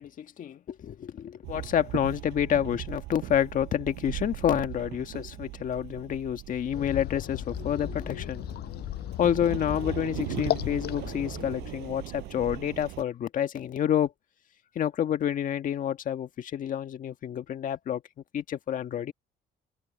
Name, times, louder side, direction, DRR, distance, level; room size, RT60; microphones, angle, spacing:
voice 1, 0.0-8.4 9.2-14.1 14.7-18.0 18.3-19.1, left 10 dB, 50° left, 1.6 m, -29 dB
Walk footsteps / Chatter / Hiss, 1.4-13.0, right 20 dB, 90° right, 6.6 m, -39 dB
sound 1, 6.7-12.5, left 14 dB, 75° left, 5.3 m, -36 dB
open air
cardioid pair, 110°, 17 cm